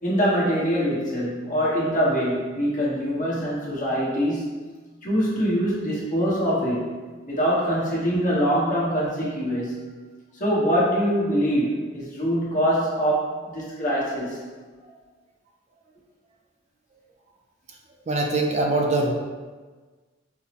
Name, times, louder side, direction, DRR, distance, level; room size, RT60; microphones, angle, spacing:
voice 1, 0.0-4.5 5.0-9.9 10.3-14.5, equal, 45° left, -7 dB, 1.1 m, -24 dB
voice 2, 18.1-19.1, right 2 dB, 35° right, 1 dB, 0.4 m, -22 dB
5.4 x 2.0 x 2.8 m, 1.4 s
head